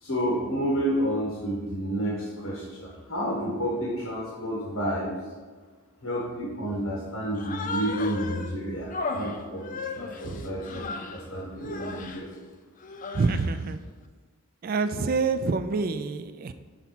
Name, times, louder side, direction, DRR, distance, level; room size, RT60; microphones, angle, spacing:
voice 1, 0.0-5.1 6.0-12.3, equal, 70° left, -5 dB, 1.4 m, -30 dB
Human voice, 7.3-8.5 8.9-11.2 11.6-12.2 12.8-13.6, left 3 dB, 35° left, 0.4 m, -35 dB
voice 2, 13.1-13.8 14.6-16.5, right 4 dB, 40° right, 11 dB, 0.3 m, -27 dB
5.8 x 4.0 x 5.8 m, 1.5 s
head